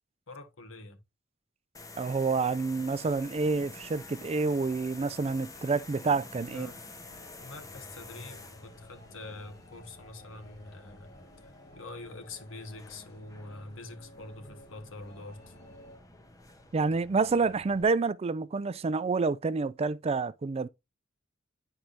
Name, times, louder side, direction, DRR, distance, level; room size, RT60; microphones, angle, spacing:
voice 1, 0.3-1.0 6.4-6.9 7.4-11.1 11.4-15.5, left 2 dB, 75° left, 1.3 m, -45 dB
sound 1, 1.7-17.8, left 2 dB, 20° left, 0.8 m, -50 dB
voice 2, 2.0-6.7 16.7-20.7, right 4 dB, 30° right, 0.4 m, -28 dB
sound 2, 7.0-16.0, left 1 dB, 50° left, 2.8 m, -54 dB
10.0 x 4.6 x 2.5 m
head